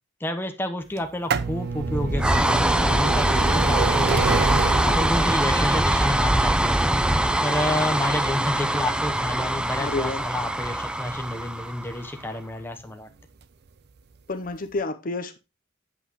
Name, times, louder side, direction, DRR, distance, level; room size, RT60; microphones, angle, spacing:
voice 1, 0.2-4.4 4.8-6.9 7.4-13.1, left 1 dB, 10° left, 0.9 m, -30 dB
sound 1, 1.0-12.6 13.4-13.5 14.5-14.6 14.8-14.9, right 5 dB, 55° right, 0.5 m, -31 dB
sound 2, 1.7-12.2, right 1 dB, 5° right, 0.5 m, -23 dB
voice 2, 9.8-10.2 14.3-15.4, left 3 dB, 45° left, 0.8 m, -29 dB
8.1 x 7.9 x 3.0 m
head